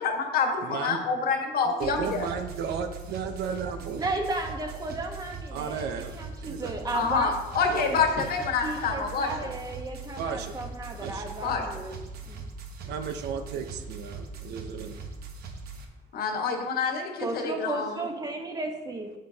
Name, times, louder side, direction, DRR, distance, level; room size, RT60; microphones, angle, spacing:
voice 1, 0.0-2.2 6.9-9.3 11.4-11.6 16.1-17.9, left 5 dB, 65° left, 2 dB, 1.5 m, -27 dB
voice 2, 0.6-1.0 1.8-4.0 5.5-6.1 6.4-6.7 7.7-8.0 10.2-10.5 11.0-11.3 12.8-15.0, right 7 dB, 80° right, 7 dB, 0.9 m, -34 dB
sound 1, 1.8-15.8, right 3 dB, 65° right, 1.2 m, -41 dB
voice 3, 4.0-7.3 7.8-8.2 8.6-11.9 12.3-12.4 17.2-19.1, right 2 dB, 20° right, 3 dB, 1.2 m, -34 dB
8.8 x 7.3 x 2.9 m, 1.1 s
cardioid pair, 110°, 17 cm